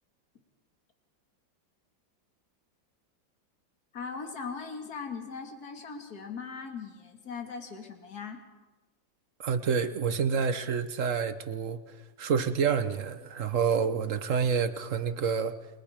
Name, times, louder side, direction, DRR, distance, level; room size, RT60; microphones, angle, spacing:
voice 1, 3.9-8.4 13.6-13.7, left 5 dB, 50° left, 4 dB, 2.6 m, -39 dB
voice 2, 9.4-15.5, right 6 dB, 50° right, 10 dB, 1.2 m, -28 dB
29.5 x 22.0 x 5.1 m, 1.2 s
omnidirectional pair, 2.1 m